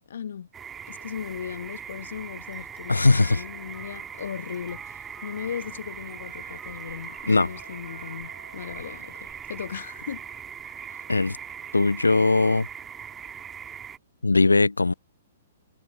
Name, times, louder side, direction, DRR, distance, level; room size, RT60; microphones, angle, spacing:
voice 1, 0.1-0.5 0.9-9.1 9.5-10.2 10.9-11.1, left 8 dB, 60° left, 1.4 m, -37 dB
sound 1, 0.5-14.0, right 8 dB, 15° right, 1.7 m, -40 dB
sound 2, 2.4-7.6, left 4 dB, 10° left, 2.5 m, -54 dB
voice 2, 2.9-3.4 7.3-7.5 11.1-11.4 11.7-12.7 14.2-14.9, left 3 dB, 80° left, 0.4 m, -20 dB
Trumpet, 5.0-12.1, right 2 dB, 85° right, 5.0 m, -54 dB
figure-of-eight pair, 120°, 0 cm